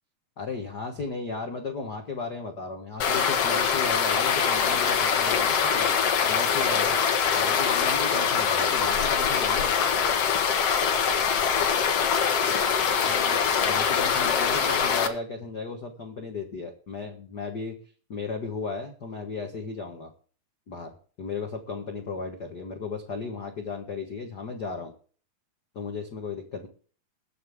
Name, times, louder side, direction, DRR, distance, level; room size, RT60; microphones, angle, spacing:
voice 1, 0.4-5.9 6.3-7.0 7.4-9.8 13.0-17.8 18.1-20.1 20.7-24.9 25.7-26.7, left 4 dB, 75° left, 3 dB, 0.9 m, -35 dB
sound 1, 3.0-15.1, left 7 dB, 55° left, 1.8 m, -23 dB
21.5 x 7.3 x 3.6 m, 0.42 s
omnidirectional pair, 4.2 m